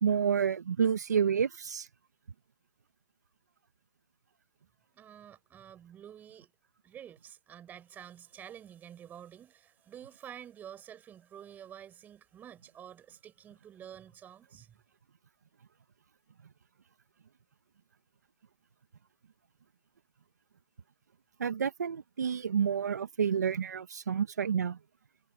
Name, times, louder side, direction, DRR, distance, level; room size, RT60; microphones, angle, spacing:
voice 1, 0.0-1.9 21.4-24.8, right 7 dB, 80° right, 1.6 m, -29 dB
voice 2, 4.9-6.5 6.8-14.7, right 9 dB, 20° right, 5.5 m, -49 dB
hypercardioid pair, 135°, 9 cm